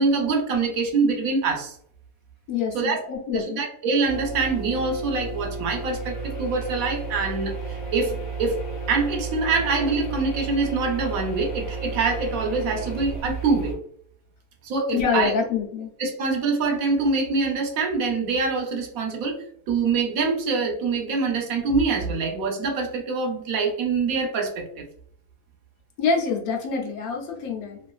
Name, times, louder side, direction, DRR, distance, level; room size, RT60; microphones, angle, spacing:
voice 1, 0.0-1.8 2.7-3.0 3.3-8.6 8.9-13.8 14.6-15.3 16.0-19.4 19.7-24.9, right 4 dB, 75° right, 2 dB, 1.1 m, -25 dB
voice 2, 2.5-3.6 14.9-15.9 26.0-27.9, left 5 dB, 80° left, 1 dB, 1.1 m, -26 dB
sound 1, 4.0-13.7, right 4 dB, 35° left, 1.1 m, -33 dB
3.0 x 2.5 x 2.3 m, 0.65 s
omnidirectional pair, 1.6 m